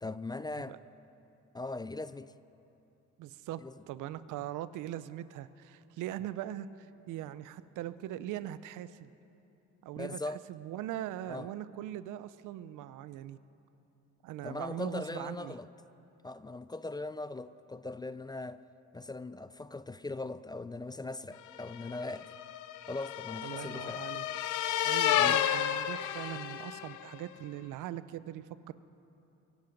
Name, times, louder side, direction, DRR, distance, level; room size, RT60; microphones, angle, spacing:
voice 1, 0.0-0.8 1.5-2.3 3.6-3.7 10.0-10.4 11.3-11.5 14.4-15.7 16.2-18.6 18.9-22.3 22.9-24.0 25.2-25.4, left 2 dB, 15° left, 0.3 m, -40 dB
voice 2, 3.2-9.1 9.8-13.4 14.2-15.5 23.4-24.3 24.8-28.7, right 12 dB, 85° right, 0.6 m, -41 dB
sound 1, 21.6-27.0, left 11 dB, 85° left, 0.7 m, -31 dB
24.0 x 11.5 x 5.2 m
cardioid pair, 90°, 30 cm